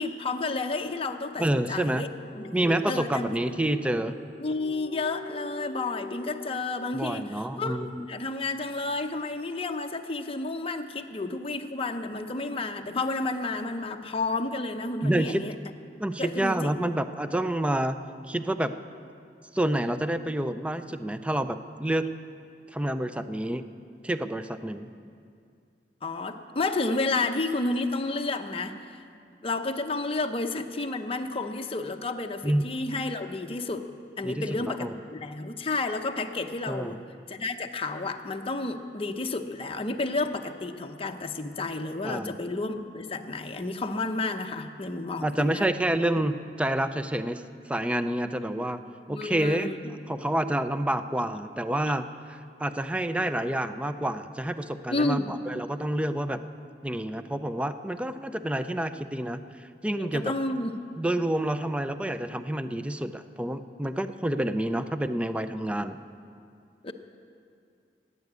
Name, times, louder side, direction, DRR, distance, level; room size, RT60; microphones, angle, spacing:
voice 1, 0.0-2.1 2.4-3.4 4.4-15.5 16.2-16.9 26.0-29.0 29.4-33.9 34.2-37.0 37.3-45.7 49.1-49.9 54.9-55.4 59.9-60.8 66.8-66.9, left 3 dB, 35° left, 5 dB, 0.8 m, -31 dB
sound 1, 1.2-7.5, left 2 dB, 55° left, 1.2 m, -45 dB
voice 2, 1.4-2.0 2.5-4.1 6.9-8.1 15.0-15.4 16.0-18.0 18.3-18.7 19.5-22.1 22.7-23.7 24.0-24.9 32.4-32.6 34.2-34.9 36.7-37.0 42.0-42.3 45.2-47.4 47.7-48.8 49.1-49.7 50.1-56.4 56.8-60.3 61.0-66.0, right 1 dB, 5° right, 10 dB, 0.4 m, -28 dB
15.5 x 9.7 x 8.1 m, 2.4 s
head